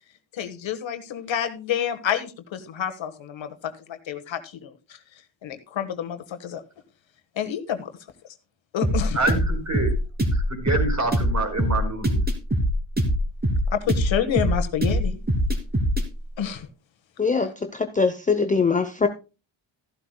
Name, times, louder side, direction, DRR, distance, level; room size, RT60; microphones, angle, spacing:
voice 1, 0.3-4.7 5.4-6.6 7.4-7.9 8.7-9.2 13.7-15.2 16.4-16.7, left 9 dB, 75° left, 8 dB, 1.5 m, -28 dB
sound 1, 8.8-16.1, equal, 20° right, 2.8 m, -23 dB
voice 2, 9.1-9.9 10.3-12.2, right 2 dB, 35° right, 5 dB, 4.3 m, -26 dB
voice 3, 17.2-19.1, left 4 dB, 15° left, 7 dB, 0.7 m, -22 dB
14.5 x 11.5 x 2.2 m, 0.31 s
wide cardioid pair, 125°, 46 cm